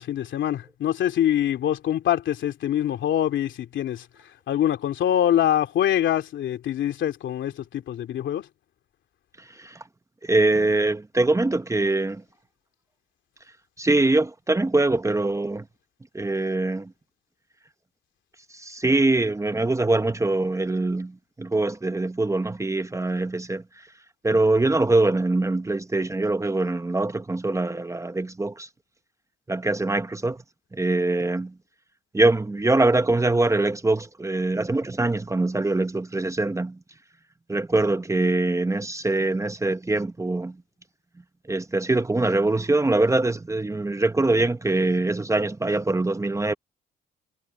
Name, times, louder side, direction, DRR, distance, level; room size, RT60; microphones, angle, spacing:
voice 1, 0.0-4.0 4.5-8.4, left 11 dB, 70° left, 2.9 m, -24 dB
voice 2, 9.4-9.8 10.2-12.2 13.8-15.6 16.1-16.9 18.5-23.9 24.2-28.7 29.5-30.4 30.7-31.5 32.1-36.8 37.5-40.6 41.5-46.5, right 2 dB, 15° right, 1.0 m, -23 dB
cardioid pair, 90°, 20 cm